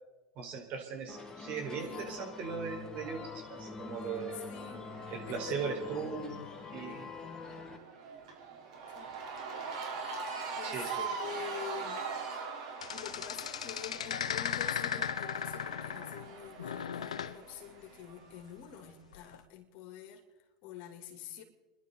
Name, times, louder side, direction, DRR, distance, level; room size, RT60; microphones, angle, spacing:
voice 1, 0.3-4.4 5.1-6.4 6.7-7.1 10.6-10.9, right 5 dB, 50° right, 1 dB, 4.7 m, -38 dB
sound 1, 1.1-7.8, left 4 dB, 20° left, 1.9 m, -45 dB
voice 2, 1.8-2.3 4.0-6.1 6.9-7.1 8.9-9.1 10.6-12.0 12.3-20.2 20.6-21.4, left 9 dB, 60° left, 4 dB, 2.9 m, -47 dB
Cheering / Crowd, 3.2-18.5, right 5 dB, 70° right, 3.9 m, -43 dB
sound 2, 12.8-16.3 16.6-17.4 19.1-19.4, left 9 dB, 85° left, 0.7 m, -36 dB
29.0 x 11.5 x 4.1 m, 1.2 s
hypercardioid pair, 90°, 3 cm